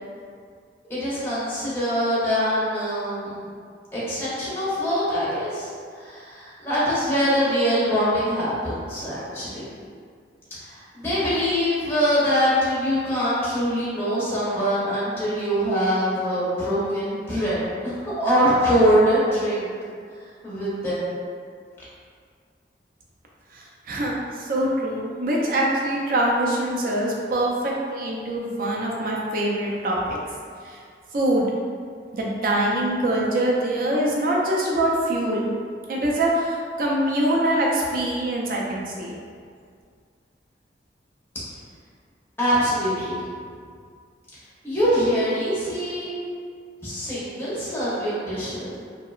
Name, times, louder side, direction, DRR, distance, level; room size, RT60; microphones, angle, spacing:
voice 1, 0.8-3.4 3.9-9.6 10.5-19.7 20.4-21.1 42.4-43.2 44.6-46.1 46.8-48.8, equal, 15° left, -10 dB, 0.5 m, -23 dB
voice 2, 23.5-30.2 30.6-30.8 31.1-31.5 32.1-35.5 35.9-39.2, right 1 dB, 50° right, -3 dB, 0.4 m, -24 dB
2.8 x 2.0 x 2.3 m, 2.1 s
head